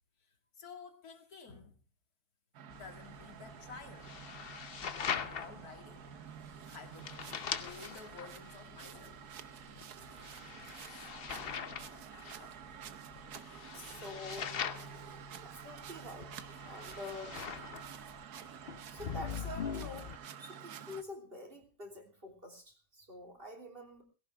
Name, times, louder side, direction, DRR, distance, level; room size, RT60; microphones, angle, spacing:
voice 1, 0.5-1.8 2.7-4.4 5.1-6.1 6.6-9.3 10.9-11.1 13.5-13.9 15.0-15.2, left 4 dB, 50° left, 2.4 m, -52 dB
sound 1, 2.5-21.0, right 8 dB, 60° right, 1.2 m, -49 dB
sound 2, 2.7-20.2, left 7 dB, 85° left, 0.5 m, -43 dB
voice 2, 13.7-14.5 15.0-16.4 16.7-17.4 18.9-20.1 20.4-24.0, left 2 dB, 25° right, 3.3 m, -47 dB
18.0 x 16.5 x 3.4 m
omnidirectional pair, 2.2 m